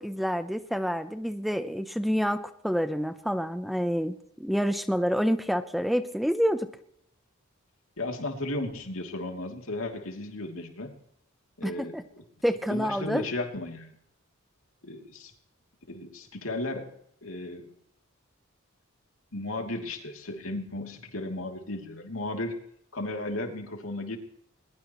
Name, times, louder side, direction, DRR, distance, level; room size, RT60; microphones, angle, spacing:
voice 1, 0.0-6.7 11.6-12.0 12.4-13.2, equal, ahead, 9 dB, 0.7 m, -28 dB
voice 2, 8.0-11.0 11.6-12.2 12.7-14.0 14.8-15.3 15.9-16.9 17.2-17.7 19.3-22.6 22.9-24.2, left 2 dB, 70° left, 3 dB, 3.0 m, -35 dB
21.0 x 21.0 x 3.1 m, 0.72 s
head